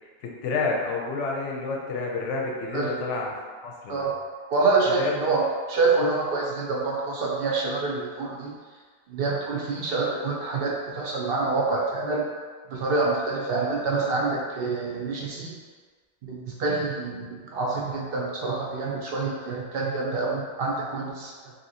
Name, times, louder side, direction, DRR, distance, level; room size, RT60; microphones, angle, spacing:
voice 1, 0.2-3.4 3.6-4.1 5.0-5.1, left 3 dB, 85° left, -1 dB, 0.9 m, -29 dB
voice 2, 4.5-8.5 9.1-12.2 12.7-15.6 16.2-21.5, right 3 dB, 65° right, -3 dB, 0.7 m, -26 dB
2.8 x 2.7 x 2.7 m, 1.5 s
omnidirectional pair, 1.2 m